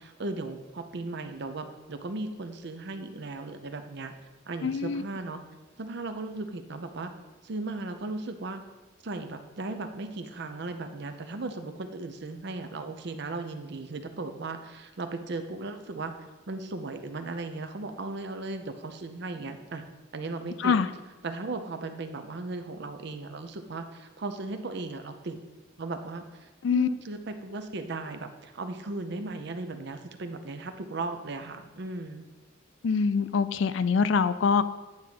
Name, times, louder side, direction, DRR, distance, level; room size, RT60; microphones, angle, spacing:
voice 1, 0.0-4.1 4.5-5.4 5.8-7.1 7.4-8.6 9.0-16.1 16.5-19.8 20.1-20.8 21.2-25.4 25.8-32.2, right 3 dB, 60° right, 7 dB, 0.7 m, -36 dB
voice 2, 4.6-5.0 20.6-20.9 26.6-26.9 32.8-34.6, left 5 dB, 70° left, 13 dB, 0.4 m, -24 dB
8.9 x 3.7 x 5.9 m, 1.2 s
head